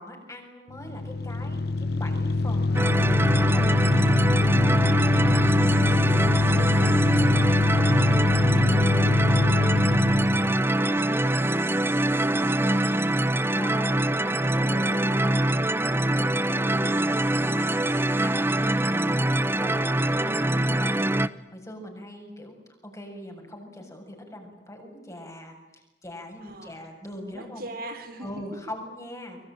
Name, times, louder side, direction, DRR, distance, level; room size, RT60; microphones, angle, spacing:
voice 1, 0.0-4.0 13.5-17.8 18.2-21.2 21.5-22.6 22.8-27.6 28.2-29.4, left 1 dB, 20° left, 3 dB, 7.1 m, -41 dB
sound 1, 0.7-10.6, left 2 dB, 65° left, 0.8 m, -23 dB
sound 2, 2.7-21.3, right 1 dB, 15° right, 0.9 m, -24 dB
voice 2, 4.9-13.1 26.4-26.8 27.3-28.3, right 1 dB, 60° right, 7 dB, 3.7 m, -43 dB
25.5 x 23.5 x 9.0 m, 0.98 s
head